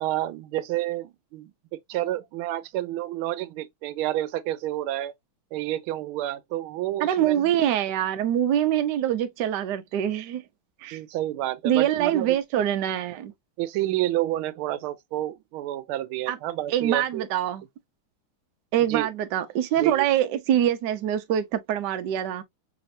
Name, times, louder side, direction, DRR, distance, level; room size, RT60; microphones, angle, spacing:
voice 1, 0.0-5.1 5.5-7.5 10.9-12.4 13.6-17.3 18.9-19.1 19.8-20.1, right 14 dB, 90° right, 1.4 m, -29 dB
voice 2, 7.0-10.4 10.8-11.0 11.6-13.3 16.3-16.4 16.7-17.6 18.7-22.4, right 11 dB, 65° right, 1.2 m, -24 dB
5.0 x 2.9 x 2.5 m
omnidirectional pair, 2.2 m